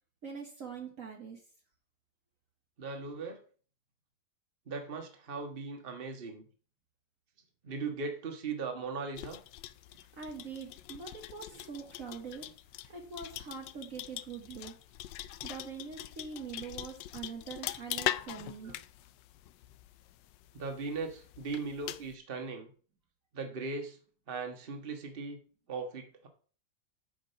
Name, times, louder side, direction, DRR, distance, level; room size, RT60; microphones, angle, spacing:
voice 1, 0.2-1.4 9.9-12.5 12.7-14.7 15.4-18.7, right 5 dB, 50° right, 2 dB, 1.6 m, -43 dB
voice 2, 2.8-3.4 4.7-6.4 7.6-9.4 11.5-11.6 18.6-18.8 20.5-22.7 23.3-24.0 24.3-25.4 25.7-26.3, right 4 dB, 35° right, 5 dB, 1.6 m, -38 dB
sound 1, 9.1-22.1, left 14 dB, 90° left, 1.3 m, -42 dB
9.1 x 5.2 x 6.7 m, 0.41 s
omnidirectional pair, 1.9 m